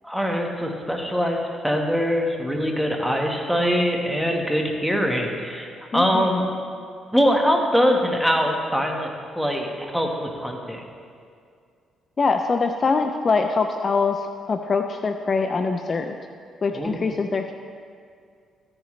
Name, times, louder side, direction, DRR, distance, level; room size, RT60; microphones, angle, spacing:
voice 1, 0.0-6.4 7.1-9.1 9.4-10.8 16.7-17.0, equal, ahead, 1 dB, 1.5 m, -23 dB
voice 2, 5.9-6.3 12.2-16.2 16.6-17.5, left 4 dB, 40° left, 6 dB, 0.5 m, -23 dB
14.5 x 8.8 x 3.3 m, 2.3 s
cardioid pair, 90°, 0 cm